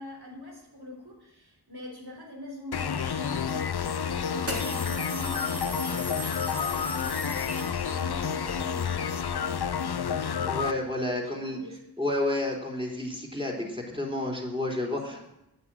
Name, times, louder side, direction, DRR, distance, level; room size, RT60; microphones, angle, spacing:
voice 1, 0.0-10.5 11.4-11.8 14.8-15.3, left 1 dB, 65° right, 0 dB, 3.7 m, -44 dB
sound 1, 2.7-10.7, left 7 dB, 70° left, 0.6 m, -30 dB
sound 2, 3.3-3.4 4.4-8.2, equal, 35° right, 2.8 m, -38 dB
voice 2, 10.4-11.6 12.0-15.3, left 1 dB, 15° right, 0 dB, 3.6 m, -30 dB
9.4 x 9.0 x 8.9 m, 0.85 s
wide cardioid pair, 50°, 41 cm